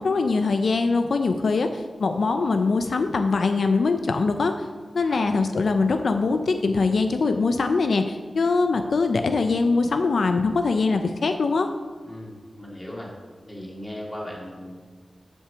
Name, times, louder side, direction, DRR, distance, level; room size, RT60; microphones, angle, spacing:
voice 1, 0.0-4.5 4.9-11.7, left 4 dB, 75° left, 7 dB, 0.4 m, -22 dB
voice 2, 5.0-5.3 12.0-13.1 13.4-14.9, left 1 dB, 10° left, -3 dB, 2.1 m, -38 dB
8.0 x 5.9 x 6.8 m, 1.5 s
wide cardioid pair, 125°, 0 cm